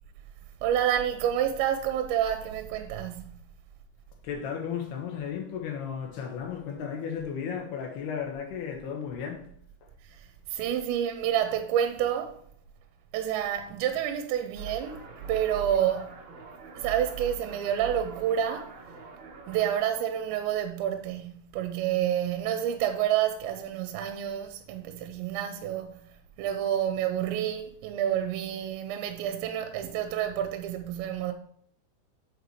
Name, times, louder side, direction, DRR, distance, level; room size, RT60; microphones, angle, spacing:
voice 1, 0.6-3.2 10.1-12.4 13.1-15.0 15.3-16.1 16.8-18.7 19.5-26.0 26.4-31.3, right 10 dB, 90° right, 2.9 m, -29 dB
voice 2, 4.2-9.5, left 7 dB, 70° left, 3.2 m, -34 dB
sound 1, 14.6-19.8, right 4 dB, 65° right, 1.8 m, -42 dB
9.0 x 7.0 x 3.1 m
omnidirectional pair, 5.1 m